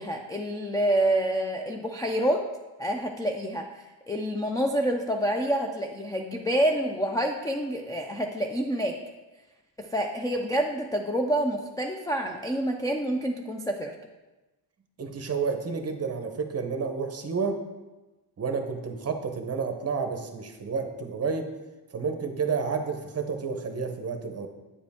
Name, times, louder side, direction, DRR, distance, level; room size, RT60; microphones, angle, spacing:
voice 1, 0.0-2.4 2.8-8.9 9.8-13.9, right 1 dB, 10° left, 2 dB, 0.3 m, -27 dB
voice 2, 15.0-17.6 18.4-21.5 21.9-24.5, right 5 dB, 30° right, 6 dB, 0.8 m, -30 dB
8.7 x 4.9 x 3.5 m, 1.1 s
cardioid pair, 110°, 47 cm